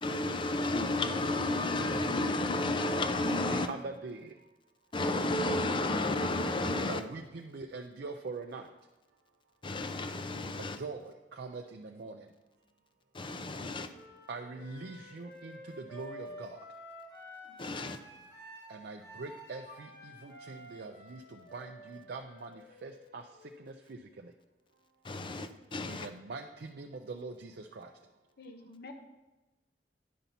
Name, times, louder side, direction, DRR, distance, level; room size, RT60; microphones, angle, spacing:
voice 1, 0.0-3.7 4.9-7.0 9.6-10.8 13.1-13.9 17.6-18.0 25.0-26.1, left 2 dB, 30° left, 0.5 m, -32 dB
voice 2, 3.5-4.4 6.8-8.7 10.6-12.3 14.3-16.7 18.7-24.3 25.9-28.0, right 3 dB, 60° right, 0.4 m, -43 dB
Wind instrument woodwind instrument, 13.9-23.7, left 1 dB, 90° left, 2.5 m, -51 dB
voice 3, 17.4-17.9 28.4-28.9, left 3 dB, 60° left, 0.8 m, -51 dB
10.5 x 5.7 x 4.0 m
head